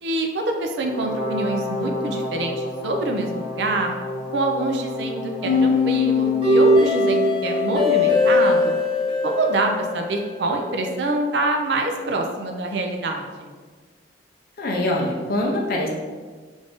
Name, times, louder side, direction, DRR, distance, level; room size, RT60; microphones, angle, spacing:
voice 1, 0.0-3.9 4.3-8.8 9.2-13.5, right 2 dB, 70° right, 3 dB, 0.4 m, -25 dB
Brass instrument, 0.8-6.7, left 1 dB, 40° left, 1.0 m, -31 dB
sound 1, 5.4-10.5, left 2 dB, 25° right, 1.2 m, -20 dB
voice 2, 14.6-15.9, left 1 dB, 55° left, -1 dB, 0.5 m, -23 dB
3.4 x 2.6 x 3.5 m, 1.5 s
head